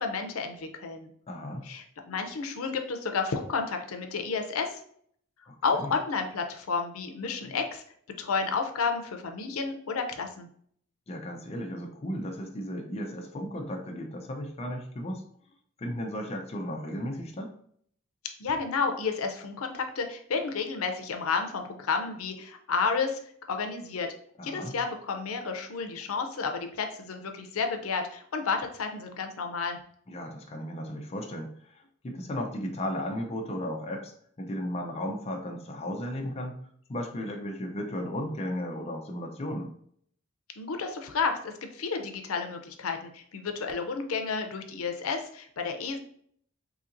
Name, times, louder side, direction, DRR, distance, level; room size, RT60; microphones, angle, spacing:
voice 1, 0.0-1.1 1.6-4.8 5.6-7.8 8.2-10.5 18.4-23.2 23.5-24.1 24.4-29.8 40.6-46.0, left 5 dB, 90° left, 5 dB, 0.5 m, -31 dB
voice 2, 1.3-1.7 5.5-5.9 7.4-7.5 11.1-15.2 15.8-17.5 24.4-24.8 30.1-34.1 34.4-36.6 36.9-39.7, equal, 30° left, 2 dB, 0.5 m, -35 dB
4.0 x 2.8 x 2.5 m, 0.62 s
head